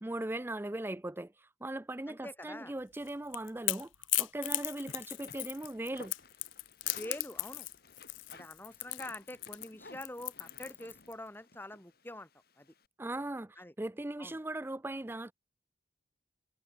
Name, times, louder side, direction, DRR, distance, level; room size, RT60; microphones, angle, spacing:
voice 1, 0.0-1.3 1.6-3.9 4.2-6.1 13.0-15.3, right 1 dB, 10° right, 0.4 m, -39 dB
voice 2, 2.1-2.7 6.9-7.7 8.3-12.3 12.6-12.7 13.6-13.7 14.2-14.4, left 1 dB, 10° left, 2.1 m, -45 dB
Crackle / Crack, 2.9-11.1, left 19 dB, 85° left, 0.6 m, -37 dB
sound 1, 4.8-12.9, left 2 dB, 55° left, 6.6 m, -56 dB
head